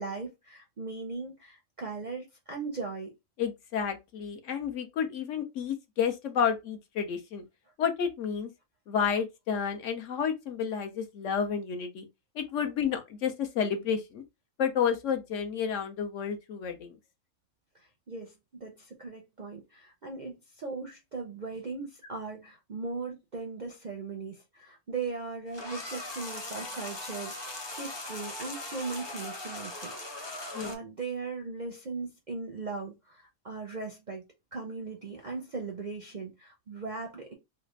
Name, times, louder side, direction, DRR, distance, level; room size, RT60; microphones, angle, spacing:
voice 1, 0.0-3.1 17.7-34.2 34.5-37.3, right 4 dB, 50° right, 0.5 m, -39 dB
voice 2, 3.4-7.4 7.8-8.5 8.9-12.1 12.4-14.2 14.6-17.0 30.5-30.8, left 7 dB, 65° left, 0.9 m, -30 dB
sound 1, 25.5-30.7, left 2 dB, 35° left, 0.4 m, -39 dB
3.3 x 2.4 x 3.1 m
omnidirectional pair, 1.5 m